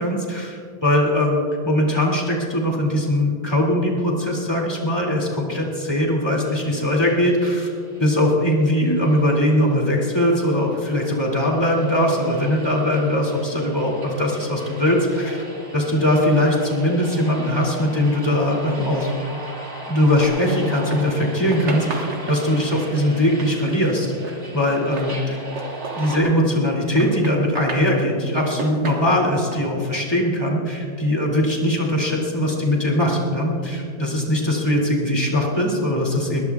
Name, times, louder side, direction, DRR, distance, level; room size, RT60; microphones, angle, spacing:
voice 1, 0.0-7.7 8.0-15.4 15.7-19.1 19.9-25.5 25.9-36.4, left 1 dB, 15° left, -2 dB, 2.5 m, -21 dB
sound 1, 6.3-26.2, right 1 dB, 30° right, 2.5 m, -39 dB
sound 2, 20.2-21.2 21.5-26.7 26.9-27.9 28.4-29.5, right 3 dB, 85° right, 2.2 m, -34 dB
20.5 x 20.5 x 2.4 m, 2.3 s
omnidirectional pair, 1.8 m